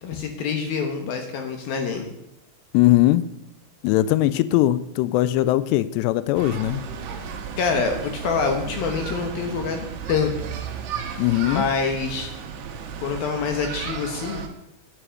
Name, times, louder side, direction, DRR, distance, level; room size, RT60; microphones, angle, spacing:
voice 1, 0.0-2.1 7.6-10.3 11.4-12.3 13.0-14.5, left 5 dB, 70° left, 4 dB, 2.5 m, -26 dB
voice 2, 2.7-3.2 3.8-6.8 11.2-11.6, left 15 dB, 85° left, 15 dB, 2.4 m, -20 dB
sound 1, 6.3-14.5, right 7 dB, 70° right, 3.1 m, -34 dB
10.0 x 9.8 x 5.9 m, 0.80 s
omnidirectional pair, 5.5 m